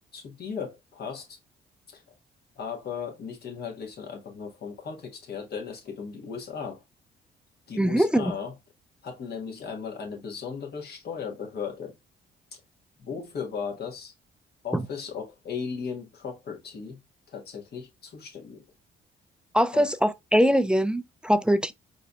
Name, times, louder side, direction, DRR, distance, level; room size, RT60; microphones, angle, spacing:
voice 1, 0.1-1.4 1.9-2.0 2.6-6.8 7.7-8.5 9.0-11.9 13.0-14.1 14.6-17.0 17.3-18.6 19.7-19.9, left 6 dB, 55° left, 1.3 m, -36 dB
voice 2, 7.8-8.3 14.7-14.8 19.5-21.7, equal, 5° right, 0.3 m, -22 dB
4.5 x 2.7 x 2.2 m
cardioid pair, 90°, 20 cm